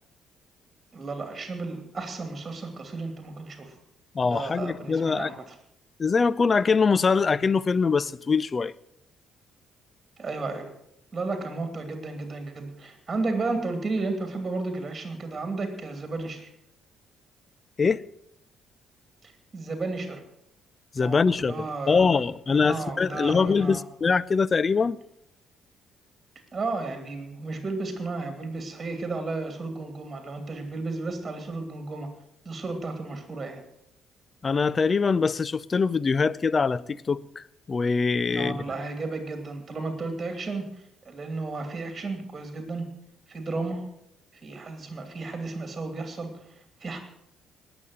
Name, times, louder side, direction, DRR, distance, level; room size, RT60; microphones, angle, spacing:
voice 1, 0.9-3.8 4.2-5.5 10.2-10.7 11.1-16.5 19.2-20.2 21.0-23.8 26.5-32.1 32.4-33.6 38.3-42.9 43.3-43.8 44.4-47.0, right 3 dB, 30° right, 2.7 m, -33 dB
voice 2, 4.1-5.3 6.0-8.7 17.8-18.0 20.9-21.5 21.9-25.0 34.4-38.6, left 5 dB, 35° left, 0.5 m, -23 dB
19.0 x 7.0 x 7.7 m
figure-of-eight pair, 45°, 0 cm